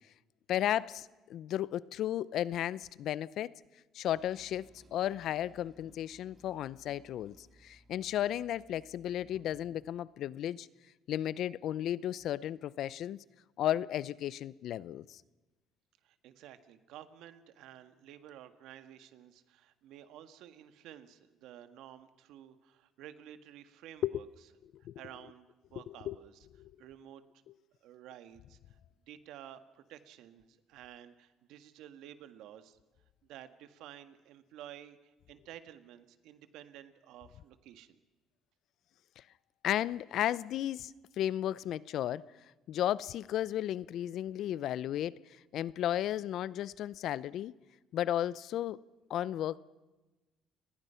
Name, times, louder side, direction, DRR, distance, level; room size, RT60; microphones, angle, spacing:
voice 1, 0.5-3.5 3.9-10.7 11.1-13.2 13.6-15.2 24.0-24.2 24.8-25.0 25.9-26.2 26.6-26.7 39.2-39.3 39.6-42.2 42.7-45.1 45.5-47.5 47.9-48.8 49.1-49.6, left 11 dB, 65° left, 0.6 m, -34 dB
Toilet flush, 4.1-9.7, right 1 dB, 20° right, 7.5 m, -62 dB
voice 2, 16.0-24.3 24.9-26.4 26.8-27.4 27.8-28.8 29.1-32.8 33.2-38.0, right 11 dB, 75° right, 1.7 m, -52 dB
29.0 x 20.5 x 5.8 m
cardioid pair, 115°, 0 cm